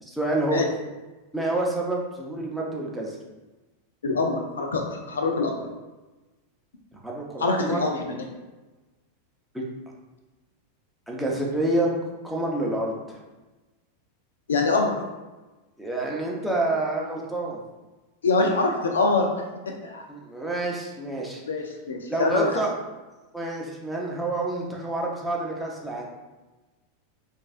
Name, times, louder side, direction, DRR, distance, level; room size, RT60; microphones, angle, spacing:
voice 1, 0.0-0.7 1.3-3.2 7.0-7.8 9.5-9.6 11.1-11.9 12.2-13.2 15.8-17.6 20.1-21.4 22.1-22.7 23.3-26.1, right 2 dB, ahead, -3 dB, 0.9 m, -28 dB
voice 2, 4.0-5.6 7.4-8.1 14.5-15.0 18.2-19.3 19.7-20.0 21.5-22.5, left 3 dB, 80° left, 2 dB, 0.5 m, -24 dB
5.1 x 2.6 x 2.5 m, 1.2 s
hypercardioid pair, 95°, 0 cm